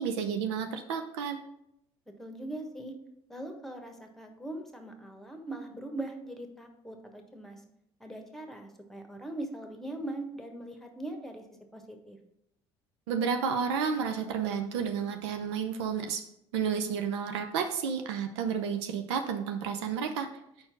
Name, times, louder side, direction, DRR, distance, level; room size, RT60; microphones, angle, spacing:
voice 1, 0.0-1.4 13.1-16.2 16.5-20.3, right 6 dB, 80° right, 5 dB, 0.6 m, -31 dB
voice 2, 2.2-2.9 3.3-7.6 8.0-11.4 11.7-12.2, right 1 dB, ahead, 4 dB, 1.2 m, -41 dB
4.8 x 4.4 x 5.9 m, 0.79 s
hypercardioid pair, 65°, 14 cm